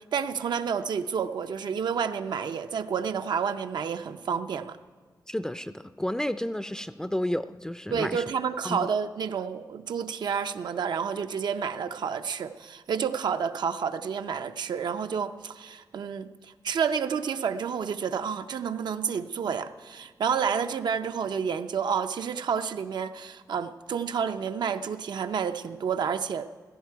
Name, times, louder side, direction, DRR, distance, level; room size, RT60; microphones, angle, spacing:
voice 1, 0.1-4.8 7.9-26.5, right 7 dB, 90° right, 9 dB, 0.5 m, -30 dB
voice 2, 5.3-8.2 8.6-8.8, left 1 dB, 10° left, 12 dB, 0.3 m, -31 dB
15.5 x 14.5 x 4.6 m, 1.5 s
wide cardioid pair, 100°, 7 cm